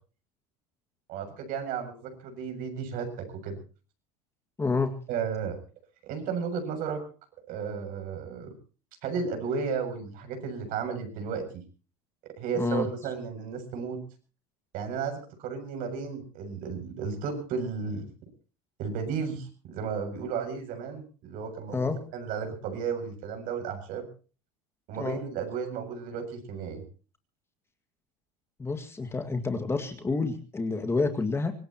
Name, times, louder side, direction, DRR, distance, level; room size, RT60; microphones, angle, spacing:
voice 1, 1.1-3.6 5.1-5.6 6.0-7.0 7.5-8.5 9.0-11.6 12.2-14.0 14.7-18.0 18.8-24.1 24.9-26.8, right 6 dB, 60° right, 5 dB, 7.4 m, -33 dB
voice 2, 4.6-4.9 12.6-12.9 21.7-22.0 24.9-25.2 28.6-31.5, left 3 dB, 15° left, 7 dB, 2.0 m, -28 dB
25.0 x 18.5 x 3.0 m, 0.37 s
supercardioid pair, 120°, 16 cm